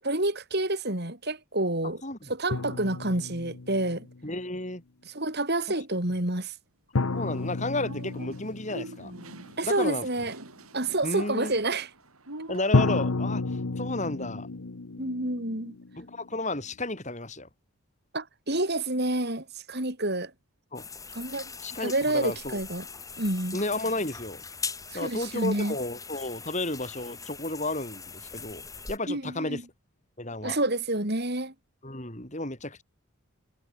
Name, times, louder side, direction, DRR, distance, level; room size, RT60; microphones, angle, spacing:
voice 1, 0.0-2.0 2.3-4.1 5.1-6.5 9.6-10.3 10.7-11.9 15.0-15.8 18.1-20.3 21.1-21.5 21.8-22.9 23.2-23.6 24.9-25.8 29.1-29.6 30.4-31.5, right 2 dB, 45° right, 4.2 m, -28 dB
sound 1, 2.5-4.3 7.0-9.8 12.7-16.6, left 3 dB, 75° left, 1.0 m, -31 dB
voice 2, 4.2-4.8 7.1-9.1 9.6-10.1 11.0-11.6 12.5-13.4 13.8-14.5 16.0-17.5 20.7-20.9 21.6-22.6 23.5-24.4 24.9-29.6 30.2-30.6 31.8-32.8, left 2 dB, 35° left, 6.1 m, -32 dB
sound 2, 7.3-13.0, right 2 dB, 80° right, 5.4 m, -45 dB
sound 3, 20.7-29.0, left 5 dB, 15° left, 5.3 m, -41 dB
head